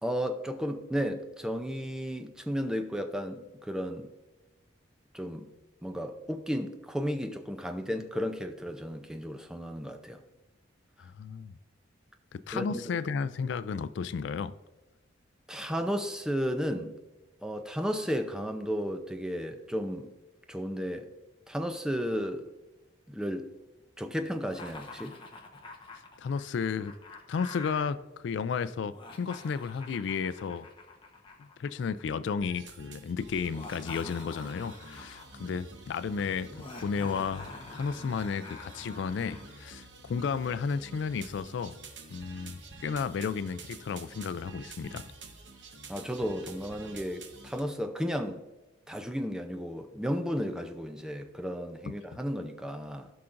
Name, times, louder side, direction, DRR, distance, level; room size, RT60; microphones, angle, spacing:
voice 1, 0.0-4.1 5.1-5.5 5.8-10.2 12.5-13.0 15.5-17.0 17.4-20.1 20.5-21.1 21.5-22.5 23.1-23.5 24.0-25.1 45.9-48.4 48.9-53.1, equal, 5° right, 0.5 m, -33 dB
voice 2, 11.0-11.6 12.3-14.6 26.2-26.9 27.3-28.0 28.2-30.7 31.4-41.8 42.1-45.0 51.8-52.0, left 5 dB, 70° left, 0.3 m, -33 dB
Laughter, 24.5-27.9 28.8-32.2 33.4-35.4 36.5-39.5, left 3 dB, 25° left, 1.0 m, -47 dB
sound 1, 32.4-47.6, right 3 dB, 70° right, 1.1 m, -49 dB
16.0 x 5.8 x 2.5 m
head